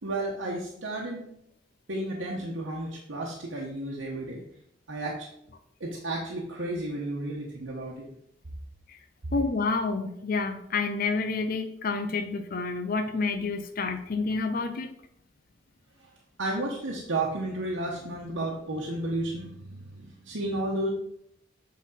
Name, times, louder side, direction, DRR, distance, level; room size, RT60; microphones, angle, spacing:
voice 1, 0.0-1.2 1.9-4.4 4.9-5.3 5.8-8.1 16.4-20.9, right 2 dB, 85° right, -3 dB, 1.1 m, -32 dB
voice 2, 9.3-14.9, left 4 dB, 50° left, 7 dB, 0.5 m, -29 dB
8.1 x 4.1 x 4.1 m, 0.74 s
head